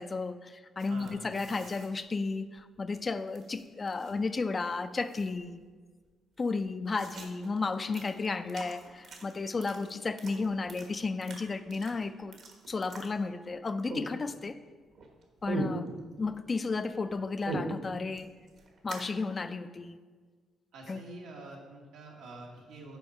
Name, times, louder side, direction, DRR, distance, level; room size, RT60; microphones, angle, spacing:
voice 1, 0.0-5.6 6.4-12.4 12.7-14.6 15.4-15.9 16.2-18.3 18.8-20.0 20.9-21.0, left 4 dB, 30° left, 12 dB, 0.3 m, -33 dB
sound 1, 0.8-3.0 3.3-4.3 4.6-4.7 5.0-5.6 6.0-6.1 6.4-13.6 13.9-14.6 14.9-16.4 16.7-19.1, right 2 dB, 65° right, 1.2 m, -42 dB
voice 2, 0.9-1.3 20.7-23.0, right 2 dB, 90° right, -2 dB, 1.5 m, -47 dB
7.0 x 4.6 x 5.4 m, 1.5 s
cardioid pair, 90°, 0 cm